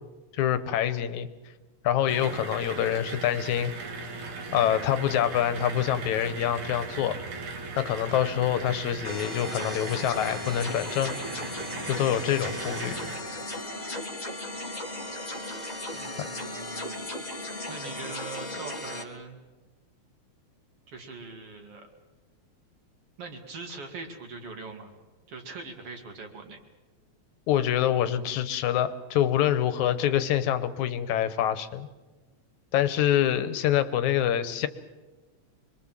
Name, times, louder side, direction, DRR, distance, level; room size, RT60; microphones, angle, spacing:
voice 1, 0.4-1.3 1.8-3.7 4.5-7.2 7.8-11.2 11.8-13.0 16.2-16.3 27.5-31.9 32.7-34.7, left 11 dB, 80° left, 13 dB, 2.3 m, -26 dB
sound 1, 2.1-13.2, right 3 dB, 85° right, 3.7 m, -38 dB
sound 2, 9.0-19.0, left 1 dB, 20° left, 1.2 m, -36 dB
voice 2, 15.9-17.3 17.7-19.4 20.9-21.9 23.2-24.9 25.3-26.6, right 3 dB, 50° right, 4 dB, 3.0 m, -42 dB
26.0 x 22.0 x 7.5 m, 1.2 s
omnidirectional pair, 3.4 m